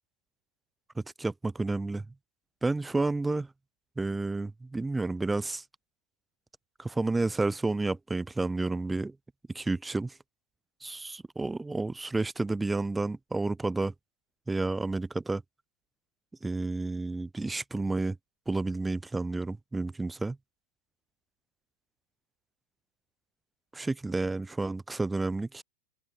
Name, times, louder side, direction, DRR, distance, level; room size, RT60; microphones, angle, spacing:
voice 1, 1.0-2.0 2.6-3.5 4.0-5.6 6.8-9.1 9.5-10.1 10.8-13.9 14.5-15.4 16.4-18.2 18.5-20.4 23.7-25.6, right 3 dB, 10° right, 8.0 m, -30 dB
open air
figure-of-eight pair, 90°, 0 cm